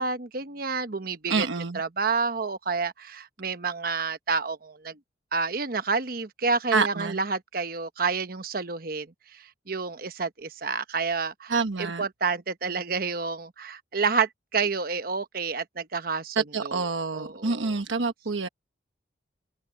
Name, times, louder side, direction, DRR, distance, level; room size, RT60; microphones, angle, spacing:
voice 1, 0.0-1.5 1.7-5.0 5.3-9.1 9.3-16.8 17.1-17.8, right 4 dB, 50° right, 1.0 m, -29 dB
voice 2, 1.3-1.8 6.7-7.2 11.5-12.0 16.4-18.5, right 4 dB, 90° right, 1.2 m, -27 dB
head